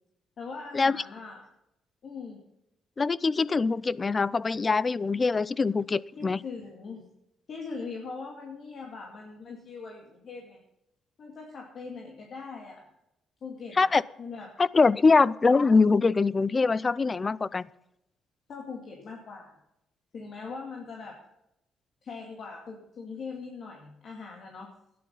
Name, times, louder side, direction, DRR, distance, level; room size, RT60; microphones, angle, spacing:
voice 1, 0.4-1.5 2.0-2.4 6.2-7.1 7.5-10.6 11.2-12.9 13.4-14.5 18.5-19.5 20.1-21.2 22.0-24.7, left 4 dB, 55° left, 0 dB, 2.3 m, -41 dB
voice 2, 3.0-6.4 13.8-14.0 14.6-17.7, left 4 dB, 30° left, 21 dB, 0.4 m, -23 dB
13.0 x 10.5 x 5.5 m, 0.86 s
cardioid pair, 90°, 0 cm